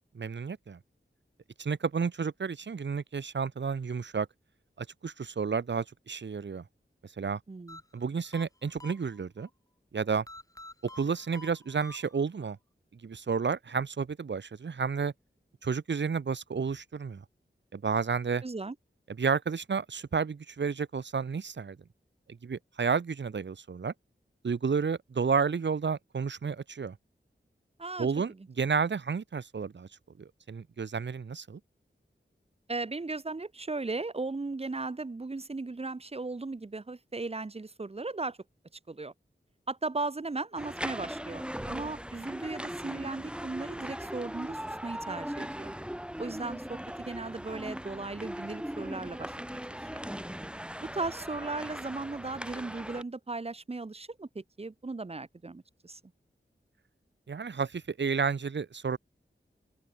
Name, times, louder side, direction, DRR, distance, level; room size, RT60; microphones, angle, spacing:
voice 1, 0.1-0.8 1.6-4.3 4.8-6.6 7.2-7.4 7.9-9.5 9.9-10.2 11.0-12.6 13.0-15.1 15.6-17.2 17.7-18.4 19.2-21.8 22.4-23.9 24.4-27.0 28.0-28.3 28.6-29.9 30.2-31.6 57.3-59.0, right 5 dB, 65° right, 0.7 m, -31 dB
voice 2, 7.5-7.8 18.4-18.7 27.8-28.1 32.7-38.4 38.9-39.1 39.7-45.7 46.2-50.0 50.8-56.0, right 3 dB, 30° right, 0.6 m, -37 dB
sound 1, 7.7-9.5 10.3-12.5, left 2 dB, 15° left, 0.8 m, -49 dB
sound 2, 40.6-53.0, equal, 5° right, 1.6 m, -39 dB
open air
wide cardioid pair, 45°, 20 cm